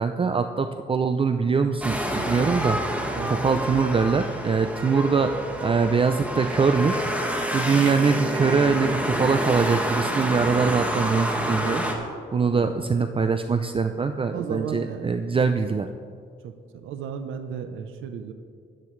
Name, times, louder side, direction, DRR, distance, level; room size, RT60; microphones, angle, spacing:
voice 1, 0.0-2.8 3.3-5.3 5.6-7.0 7.3-11.8 12.3-15.9, right 5 dB, 25° right, 8 dB, 0.5 m, -23 dB
sound 1, 1.8-11.9, equal, 5° right, 1.7 m, -28 dB
voice 2, 14.3-15.8 16.4-18.3, right 7 dB, 85° right, 8 dB, 0.8 m, -35 dB
16.5 x 12.0 x 3.3 m, 2.2 s
cardioid pair, 90°, 20 cm